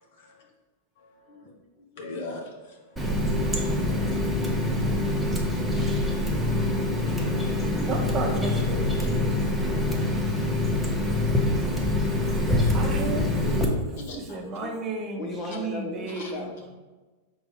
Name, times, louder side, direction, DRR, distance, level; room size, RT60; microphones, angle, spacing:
voice 1, 1.3-2.2 8.0-9.4 11.0-12.4 13.8-14.8 15.2-16.6, left 3 dB, 40° left, 2 dB, 1.2 m, -41 dB
voice 2, 2.0-4.0 4.4-4.6 7.1-7.6 14.1-14.2 16.1-16.3, left 2 dB, 65° left, 0 dB, 1.4 m, -42 dB
Water tap faucet, 3.0-13.7, left 1 dB, 5° right, 0.9 m, -25 dB
voice 3, 7.8-9.2 12.7-13.8 14.1-16.5, right 3 dB, 30° right, 2 dB, 0.9 m, -33 dB
5.2 x 3.9 x 4.9 m, 1.3 s
hypercardioid pair, 120°, 0 cm